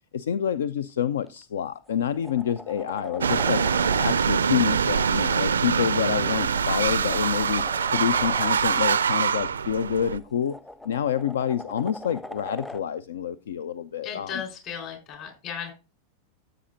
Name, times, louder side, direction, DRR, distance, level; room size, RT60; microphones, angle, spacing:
voice 1, 0.1-3.6 4.0-7.6 7.9-10.6 10.8-14.3, left 9 dB, 65° left, 0.4 m, -27 dB
sound 1, 1.3-1.4 1.9-4.1 5.8-8.5 10.0-12.8 15.1-15.2, left 2 dB, 5° left, 0.5 m, -41 dB
sound 2, 3.2-10.2, right 6 dB, 70° right, 0.4 m, -24 dB
voice 2, 14.0-15.7, left 7 dB, 40° left, 3.9 m, -35 dB
14.5 x 7.7 x 2.5 m
figure-of-eight pair, 90°, 0 cm